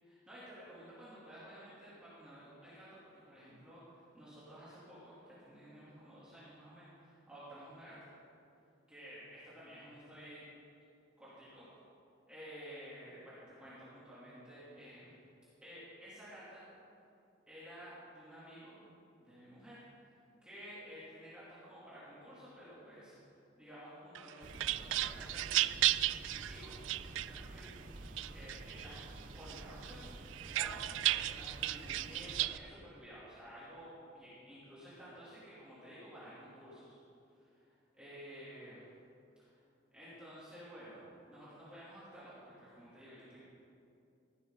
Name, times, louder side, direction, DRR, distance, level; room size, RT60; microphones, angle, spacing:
voice 1, 0.0-8.1 8.9-10.5 11.2-11.6 12.3-15.1 15.6-16.6 17.5-18.8 19.2-20.1 20.4-23.1 23.5-26.2 26.5-30.0 30.3-30.8 31.1-37.0 37.4-38.8 39.4-39.6 39.9-43.4, equal, 5° right, -12 dB, 3.2 m, -53 dB
sound 1, 24.1-27.7 28.2-29.1 29.5-32.6, right 15 dB, 75° right, 0.3 m, -34 dB
sound 2, 24.4-32.5, right 1 dB, 40° right, 0.8 m, -50 dB
15.5 x 12.5 x 4.0 m, 2.5 s
head